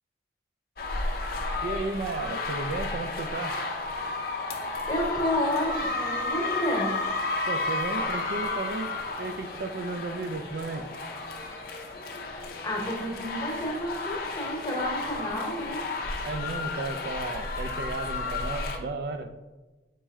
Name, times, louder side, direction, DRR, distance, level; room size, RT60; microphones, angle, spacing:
sound 1, 0.8-18.8, left 3 dB, 50° left, 0.5 m, -32 dB
voice 1, 1.6-3.6 7.5-10.9 16.2-19.3, right 3 dB, 55° right, 8 dB, 0.3 m, -34 dB
voice 2, 4.6-6.9 12.6-15.8, left 1 dB, 20° left, -1 dB, 1.0 m, -30 dB
4.5 x 3.1 x 3.5 m, 1.1 s
head